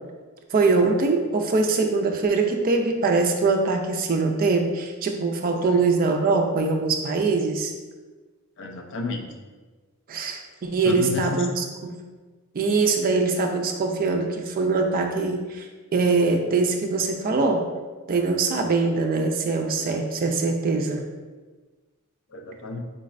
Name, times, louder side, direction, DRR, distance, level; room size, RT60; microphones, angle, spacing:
voice 1, 0.5-7.7 10.1-12.0 12.5-17.6 18.1-21.1, right 3 dB, 40° right, 3 dB, 0.4 m, -23 dB
voice 2, 8.6-9.3 10.8-11.5 22.3-22.8, left 3 dB, 55° left, 2 dB, 0.4 m, -31 dB
3.9 x 3.1 x 2.5 m, 1.3 s
head